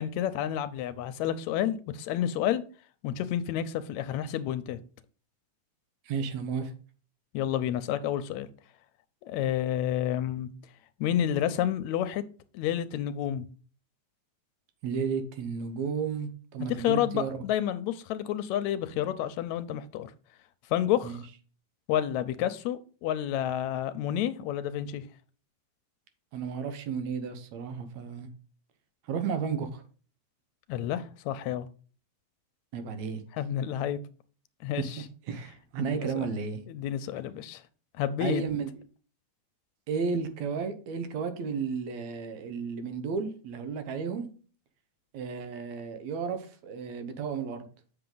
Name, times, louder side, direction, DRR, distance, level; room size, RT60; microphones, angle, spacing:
voice 1, 0.0-2.6 3.0-4.8 7.3-8.5 9.2-10.5 11.0-12.2 12.5-13.5 16.6-20.1 20.7-21.2 21.9-25.1 30.7-31.7 33.4-34.0 34.6-35.1 35.8-36.3 36.7-37.6 38.0-38.4, left 11 dB, 80° left, 1.8 m, -30 dB
voice 2, 6.1-6.7 14.8-17.4 21.0-21.2 26.3-28.3 29.1-29.8 32.7-33.2 34.8-34.9 35.3-36.6 38.2-38.7 39.9-44.3 45.1-47.6, right 6 dB, 70° right, 2.3 m, -33 dB
7.5 x 6.7 x 3.9 m
omnidirectional pair, 3.4 m